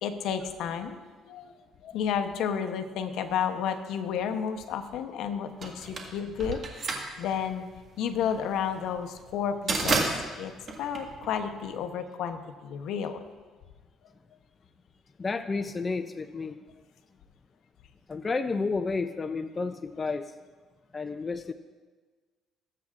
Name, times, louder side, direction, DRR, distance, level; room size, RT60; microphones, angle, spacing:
voice 1, 0.0-1.5 1.8-6.6 6.9-7.7 8.0-10.1 10.4-10.5 10.8-13.2, left 8 dB, 75° left, 8 dB, 0.8 m, -31 dB
sound 1, 5.6-11.8, right 3 dB, 40° right, 1.9 m, -32 dB
voice 2, 15.2-16.6 18.1-20.3 20.9-21.5, left 4 dB, 25° left, 9 dB, 0.4 m, -31 dB
19.5 x 8.5 x 2.5 m, 1.4 s
cardioid pair, 100°, 0 cm